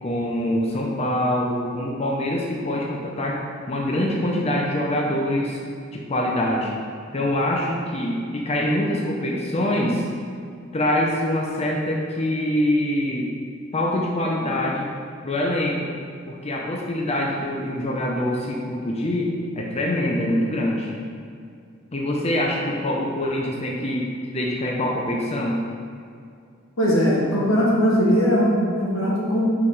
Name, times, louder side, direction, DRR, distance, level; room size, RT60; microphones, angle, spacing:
voice 1, 0.0-3.4 3.7-5.6 5.9-6.7 7.1-10.1 10.7-13.3 13.7-14.9 15.2-15.9 16.3-20.9 21.9-24.1 24.3-25.6, left 1 dB, 30° left, -1 dB, 0.6 m, -24 dB
voice 2, 26.8-29.4, equal, 90° left, -4 dB, 1.6 m, -20 dB
5.5 x 4.8 x 4.8 m, 2.4 s
head